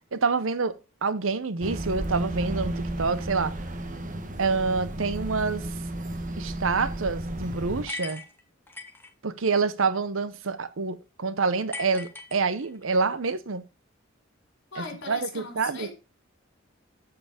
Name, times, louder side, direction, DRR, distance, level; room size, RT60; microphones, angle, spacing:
voice 1, 0.1-0.7 1.0-3.5 4.4-5.7 6.4-8.2 9.2-13.6 14.8-15.9, right 4 dB, 75° right, 0.8 m, -27 dB
sound 1, 1.6-7.9, right 1 dB, 40° right, 1.3 m, -33 dB
sound 2, 7.9-9.1 11.7-12.9, left 3 dB, 10° left, 1.4 m, -39 dB
voice 2, 14.7-15.9, left 3 dB, 60° left, 4.3 m, -38 dB
12.5 x 5.0 x 5.0 m
head